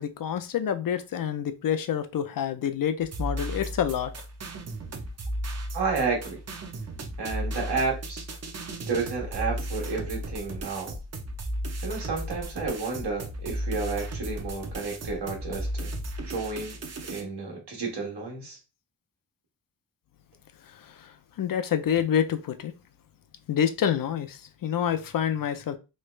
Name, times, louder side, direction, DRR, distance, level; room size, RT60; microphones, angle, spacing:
voice 1, 0.0-4.1 21.4-22.7 23.5-25.8, left 9 dB, 55° left, 9 dB, 0.5 m, -27 dB
sound 1, 3.0-17.2, right 1 dB, 40° right, 0.6 m, -35 dB
voice 2, 5.7-6.4 7.2-8.2 8.9-10.9 11.8-15.9 16.3-16.8 17.1-18.6, right 4 dB, 85° right, 0 dB, 1.3 m, -31 dB
3.2 x 2.3 x 3.1 m, 0.29 s
wide cardioid pair, 100°, 39 cm